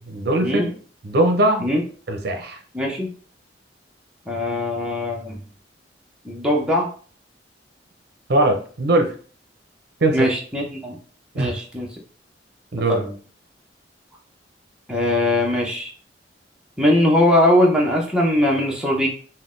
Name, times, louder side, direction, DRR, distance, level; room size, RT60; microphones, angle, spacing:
voice 1, 0.1-0.7 1.0-1.7 2.1-2.6 8.3-9.1 10.0-10.3 11.3-11.6 12.7-13.0, right 1 dB, 60° right, 4 dB, 0.6 m, -20 dB
voice 2, 2.7-3.1 4.3-5.4 6.2-6.9 10.1-11.0 11.4-11.9 12.9-13.2 14.9-15.9 16.8-19.1, left 1 dB, 5° right, -2 dB, 0.7 m, -20 dB
3.9 x 2.1 x 3.7 m, 0.42 s
head